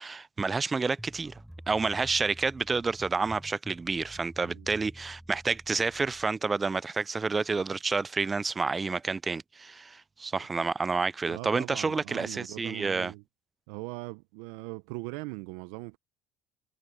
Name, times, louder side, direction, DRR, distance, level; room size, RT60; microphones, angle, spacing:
voice 1, 0.0-1.3 1.7-13.1, right 4 dB, 25° right, 0.4 m, -29 dB
sound 1, 1.0-6.3, equal, 5° right, 3.7 m, -49 dB
voice 2, 11.3-13.2 13.7-16.0, right 24 dB, 75° right, 0.6 m, -40 dB
hypercardioid pair, 80°, 0 cm